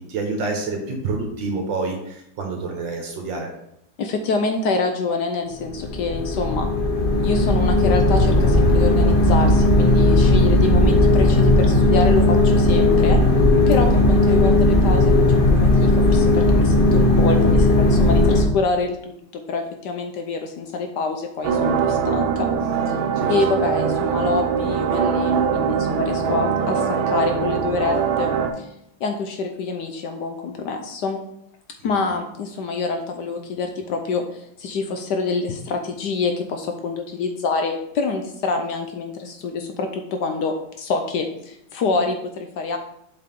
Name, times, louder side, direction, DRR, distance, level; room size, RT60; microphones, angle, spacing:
voice 1, 0.0-3.5 23.2-23.3, right 3 dB, 65° right, 2 dB, 2.0 m, -28 dB
voice 2, 4.0-6.7 7.2-13.2 13.7-15.1 15.4-22.5 23.3-28.7 29.0-31.2 31.8-42.8, left 4 dB, 65° left, 5 dB, 1.2 m, -26 dB
sound 1, 5.6-18.4, left 1 dB, 40° left, 0.8 m, -16 dB
sound 2, 21.4-28.5, right 6 dB, 90° right, 1.6 m, -22 dB
8.0 x 4.8 x 3.7 m, 0.77 s
omnidirectional pair, 2.2 m